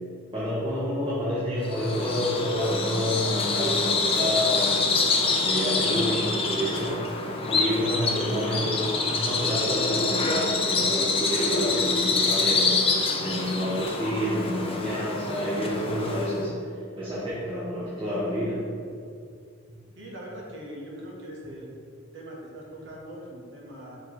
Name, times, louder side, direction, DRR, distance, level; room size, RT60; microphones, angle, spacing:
voice 1, 0.3-5.0 5.4-12.7 13.2-16.5 17.0-18.6, equal, 25° right, -10 dB, 1.2 m, -29 dB
Bird vocalization bird call bird song, 1.6-16.4, left 3 dB, 30° left, 0.5 m, -26 dB
voice 2, 20.0-21.8 22.1-24.0, equal, 65° right, -3 dB, 1.3 m, -41 dB
6.2 x 3.4 x 4.5 m, 2.3 s
head